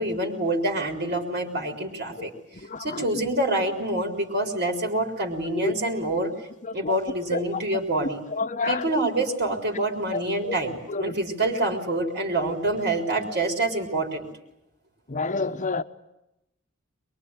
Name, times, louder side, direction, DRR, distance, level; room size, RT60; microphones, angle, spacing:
voice 1, 0.0-2.3 2.8-6.3 6.7-8.2 8.7-14.3, right 2 dB, 55° right, 3 dB, 3.9 m, -26 dB
voice 2, 2.5-3.1 5.6-5.7 6.6-7.0 7.3-7.6 8.3-9.0 9.7-9.8 10.1-10.5 10.9-11.1 15.1-15.8, left 3 dB, 40° left, 10 dB, 1.1 m, -29 dB
23.0 x 23.0 x 9.8 m, 0.86 s
head